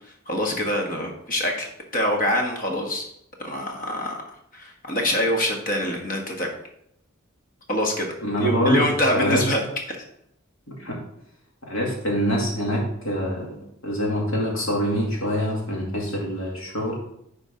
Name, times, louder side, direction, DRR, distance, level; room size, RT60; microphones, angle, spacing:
voice 1, 0.3-3.1 3.4-4.2 4.5-6.5 7.7-9.6, left 1 dB, 40° left, 1 dB, 1.4 m, -25 dB
voice 2, 8.2-8.9 9.1-9.4 10.8-11.0 11.7-13.6 13.8-17.0, equal, 85° left, -2 dB, 2.5 m, -25 dB
9.9 x 4.5 x 3.8 m, 0.75 s
head